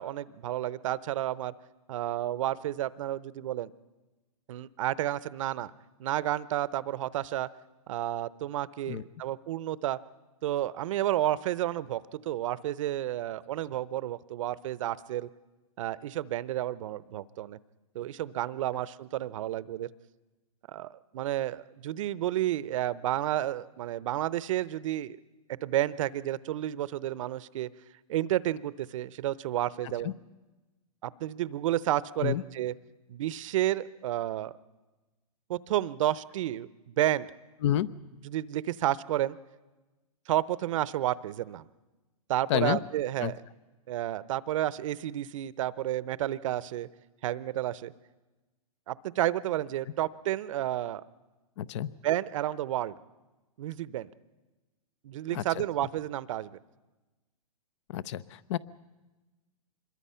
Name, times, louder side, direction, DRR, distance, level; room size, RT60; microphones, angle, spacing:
voice 1, 0.0-1.5 1.9-3.7 4.5-5.7 6.0-7.5 7.9-10.0 10.4-15.3 15.8-17.6 17.9-19.9 20.7-25.2 25.6-27.7 28.1-30.1 31.0-32.7 33.1-34.5 35.5-37.3 38.2-39.4 40.3-41.6 42.3-43.4 43.9-46.9 47.2-47.9 48.9-51.0 52.0-52.9 53.6-54.1 55.0-56.6, right 13 dB, 60° right, 18 dB, 0.7 m, -31 dB
voice 2, 51.6-51.9 55.3-55.6 57.9-58.6, left 12 dB, 50° left, 19 dB, 0.7 m, -29 dB
25.5 x 22.0 x 5.7 m, 1.2 s
hypercardioid pair, 140°, 19 cm